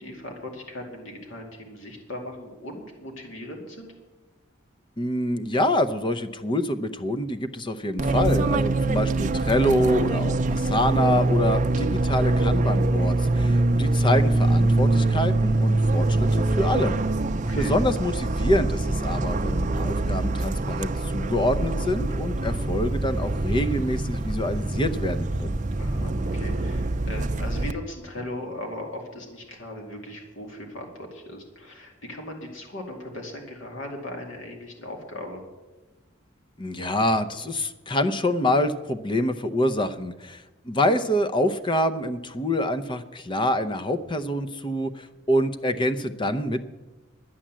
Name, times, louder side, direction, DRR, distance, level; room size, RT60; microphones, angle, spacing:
voice 1, 0.0-3.9 17.4-17.8 25.8-35.5, left 1 dB, 70° left, 2 dB, 2.5 m, -38 dB
voice 2, 5.0-17.0 17.6-25.6 36.6-46.6, left 1 dB, 25° left, 10 dB, 0.7 m, -26 dB
Fixed-wing aircraft airplane, 8.0-27.7, right 2 dB, 40° right, 0.6 m, -24 dB
11.0 x 10.0 x 7.4 m, 1.1 s
head